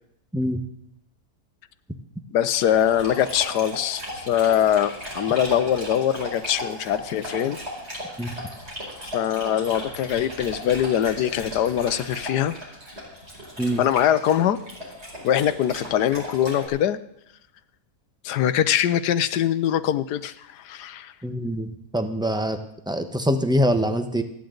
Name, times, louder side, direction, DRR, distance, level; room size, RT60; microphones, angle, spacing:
voice 1, 2.3-7.6 9.1-12.5 13.8-14.6 15.2-17.0 18.2-21.1, left 10 dB, 85° left, 14 dB, 1.3 m, -22 dB
Dog, 2.4-16.7, equal, 40° right, 5.2 m, -36 dB
voice 2, 21.2-21.7 21.9-22.6 22.9-24.2, equal, 5° right, 7 dB, 0.8 m, -24 dB
28.5 x 10.0 x 3.9 m, 0.78 s
omnidirectional pair, 1.7 m